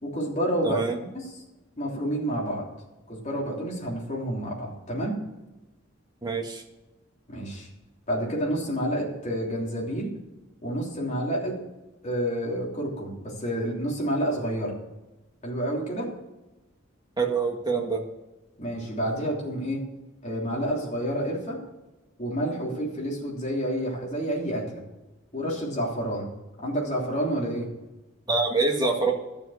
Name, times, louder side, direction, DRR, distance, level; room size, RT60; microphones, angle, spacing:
voice 1, 0.0-0.8 1.1-1.3 1.8-2.6 3.1-5.2 7.3-7.7 8.1-10.1 10.6-11.6 12.0-14.7 15.4-16.1 18.6-19.8 20.2-21.6 22.2-24.8 25.3-26.3 26.6-27.7, equal, 35° left, -3 dB, 3.4 m, -29 dB
voice 2, 0.6-1.0 6.2-6.6 17.2-18.0 28.3-29.1, right 3 dB, 20° right, 1 dB, 1.8 m, -25 dB
12.5 x 7.2 x 6.6 m, 1.0 s
head